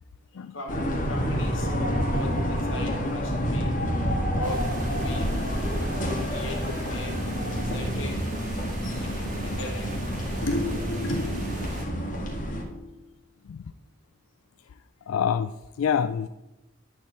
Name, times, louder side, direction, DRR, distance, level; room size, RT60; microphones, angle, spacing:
voice 1, 0.5-3.7 4.3-5.3 5.8-5.9 6.1-7.2 7.6-8.2 9.0-10.0 10.4-13.1, left 1 dB, 65° left, 1 dB, 2.1 m, -37 dB
sound 1, 0.7-12.6, equal, 35° left, 1.7 m, -28 dB
sound 2, 4.4-11.8, right 1 dB, 35° right, 2.0 m, -38 dB
voice 2, 15.1-16.3, left 7 dB, 80° left, 11 dB, 0.4 m, -26 dB
11.5 x 4.5 x 7.4 m, 0.99 s
head